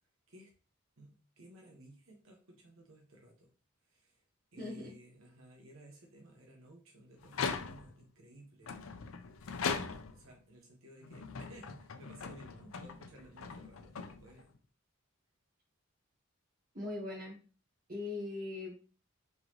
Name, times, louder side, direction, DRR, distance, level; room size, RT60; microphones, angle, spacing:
voice 1, 1.0-3.5 3.9-4.2 4.5-8.8 9.4-14.5, right 1 dB, 90° right, 1 dB, 1.2 m, -57 dB
voice 2, 4.6-4.9 16.7-17.4 17.9-18.9, left 2 dB, 45° right, -7 dB, 1.4 m, -40 dB
sound 1, 7.2-8.1 8.6-10.3 11.0-14.6, left 5 dB, 85° left, 0.5 m, -40 dB
4.0 x 3.8 x 3.0 m, 0.35 s
head